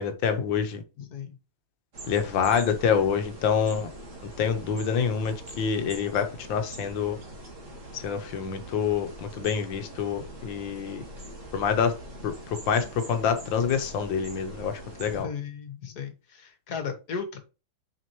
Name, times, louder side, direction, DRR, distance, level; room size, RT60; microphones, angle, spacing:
voice 1, 0.0-0.8 2.1-3.9 4.4-7.2 7.9-11.0 11.5-12.0 12.2-15.3, left 7 dB, 70° left, 1.6 m, -27 dB
voice 2, 1.0-1.4 15.1-17.4, left 6 dB, 55° left, 1.7 m, -36 dB
sound 1, 1.9-15.2, right 1 dB, 40° right, 2.2 m, -43 dB
6.1 x 5.3 x 3.0 m
omnidirectional pair, 2.2 m